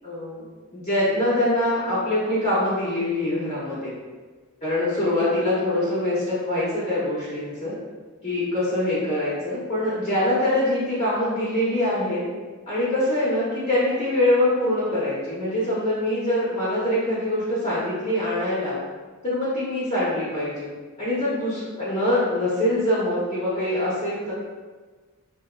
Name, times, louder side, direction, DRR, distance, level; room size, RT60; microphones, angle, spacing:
voice 1, 0.0-0.4 0.7-3.9 4.6-7.7 8.2-12.2 12.7-18.8 19.2-20.7 21.0-24.3, left 1 dB, 35° left, -10 dB, 0.8 m, -24 dB
3.6 x 2.6 x 2.2 m, 1.4 s
head